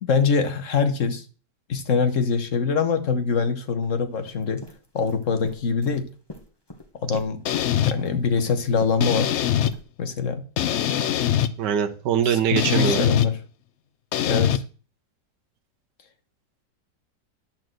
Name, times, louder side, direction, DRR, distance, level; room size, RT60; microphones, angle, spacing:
voice 1, 0.0-1.2 1.7-4.6 4.9-6.1 7.0-7.4 7.8-9.3 10.0-10.4 12.2-13.4 14.3-14.6, left 5 dB, 50° left, 8 dB, 1.5 m, -23 dB
sound 1, 3.8-3.9 4.2-6.9 7.1-9.8, left 1 dB, 15° left, 1.4 m, -41 dB
sound 2, 7.5-7.9 9.0-9.7 10.6-11.5 12.6-13.3 14.1-14.6, left 10 dB, 70° left, 0.7 m, -22 dB
voice 2, 11.6-13.0, right 8 dB, 80° right, 6 dB, 1.5 m, -22 dB
11.0 x 4.5 x 7.6 m, 0.38 s
omnidirectional pair, 1.8 m